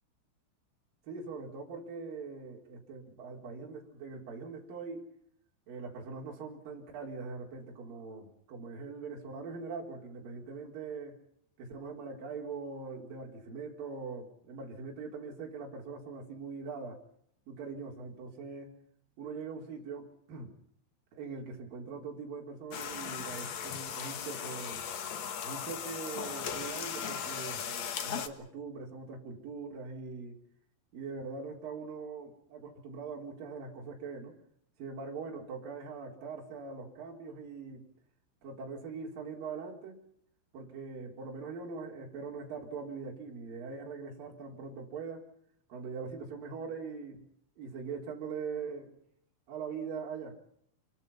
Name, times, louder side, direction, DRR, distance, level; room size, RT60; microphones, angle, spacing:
voice 1, 1.1-5.1 5.7-11.2 11.6-17.0 17.5-18.8 19.2-20.6 21.1-24.8 25.4-30.4 30.9-34.4 34.8-37.8 38.4-40.0 40.5-45.3 45.7-47.2 47.6-48.9 49.5-50.4, right 4 dB, 45° right, -1 dB, 5.6 m, -42 dB
sound 1, 22.7-28.3, left 7 dB, 80° left, 1.6 m, -38 dB
28.0 x 23.5 x 5.8 m, 0.70 s
omnidirectional pair, 5.8 m